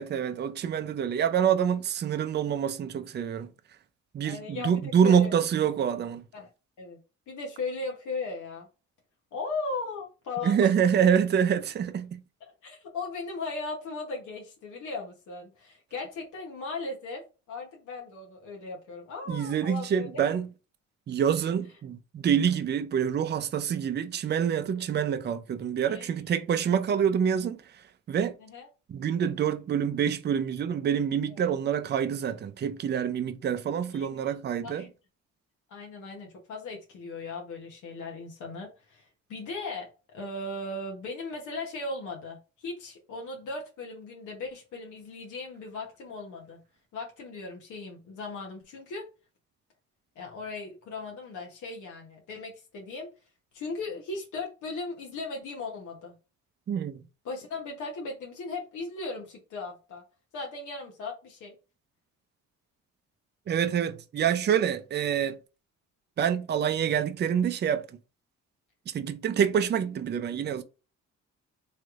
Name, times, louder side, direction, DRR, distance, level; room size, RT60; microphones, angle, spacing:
voice 1, 0.0-3.5 4.1-6.2 10.4-12.2 19.3-20.5 21.1-27.8 28.1-28.3 28.9-34.8 56.7-57.0 63.5-65.4 66.2-67.8 68.9-70.6, right 8 dB, 35° right, 0.4 m, -26 dB
voice 2, 4.2-5.3 6.3-6.5 6.8-7.0 7.3-8.7 9.3-10.7 12.4-20.1 25.8-26.1 28.4-28.7 31.3-31.5 33.9-34.2 34.6-34.9 35.7-39.9 40.1-46.6 46.9-49.1 50.2-53.1 53.5-56.1 57.2-60.0 60.3-61.6, left 3 dB, 75° left, 0.9 m, -37 dB
3.2 x 3.1 x 2.4 m
cardioid pair, 90°, 30 cm